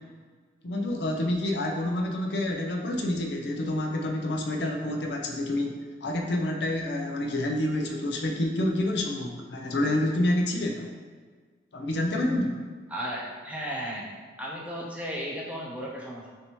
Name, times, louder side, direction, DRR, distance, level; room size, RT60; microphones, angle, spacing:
voice 1, 0.6-10.9 11.7-12.6, left 1 dB, 65° left, 1 dB, 0.6 m, -28 dB
voice 2, 12.9-14.1 14.4-16.3, equal, 5° right, -4 dB, 0.6 m, -34 dB
6.4 x 2.7 x 3.0 m, 1.5 s
head